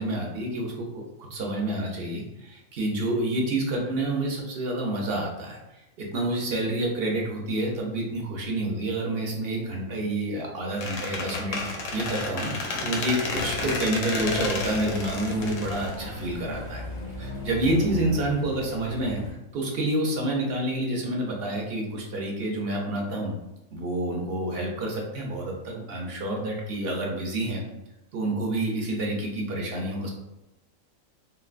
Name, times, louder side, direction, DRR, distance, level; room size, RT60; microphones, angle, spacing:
voice 1, 0.0-16.8 17.2-19.2 19.5-23.3 23.7-27.6 28.1-30.1, right 1 dB, 60° right, -1 dB, 0.7 m, -28 dB
Squeak, 10.8-16.6, left 3 dB, 75° left, 1.0 m, -31 dB
sound 1, 14.2-19.3, equal, 40° left, 0.4 m, -37 dB
3.8 x 2.2 x 2.4 m, 0.94 s
omnidirectional pair, 1.4 m